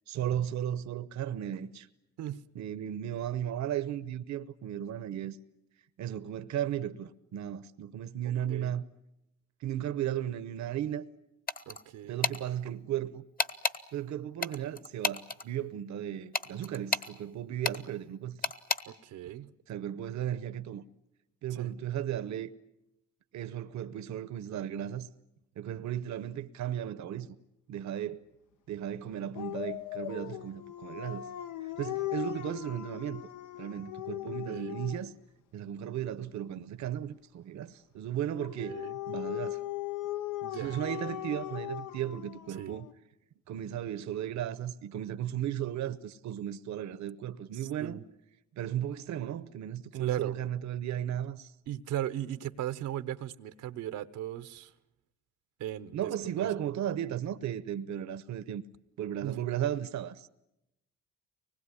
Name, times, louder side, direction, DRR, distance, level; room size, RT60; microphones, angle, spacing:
voice 1, 0.1-1.9 2.5-5.4 6.0-8.8 9.6-11.1 12.1-13.2 13.9-18.5 19.7-20.8 21.4-22.5 23.3-25.1 25.6-27.3 27.7-28.2 28.7-31.3 31.8-33.2 33.6-35.1 35.5-38.8 39.1-39.6 40.5-42.9 43.5-48.0 48.6-51.5 55.9-58.6 59.0-60.3, right 10 dB, 65° right, 0.9 m, -35 dB
sound 1, 11.5-11.8 12.2-12.4 13.4-13.8 14.4-15.4 16.3-17.1 17.6-17.8 18.4-18.8, left 3 dB, 30° left, 1.2 m, -31 dB
voice 2, 11.7-12.2 18.9-19.5 21.6-21.7 34.3-34.8 38.6-38.9 40.4-40.8 42.6-42.7 47.5-48.0 50.0-50.4 51.7-54.7 55.6-56.1 56.4-56.5 59.2-59.4, right 12 dB, 85° right, 1.0 m, -37 dB
Dog, 29.3-35.2 38.3-42.9, left 14 dB, 80° left, 1.0 m, -38 dB
24.5 x 20.0 x 9.8 m
cardioid pair, 90°, 30 cm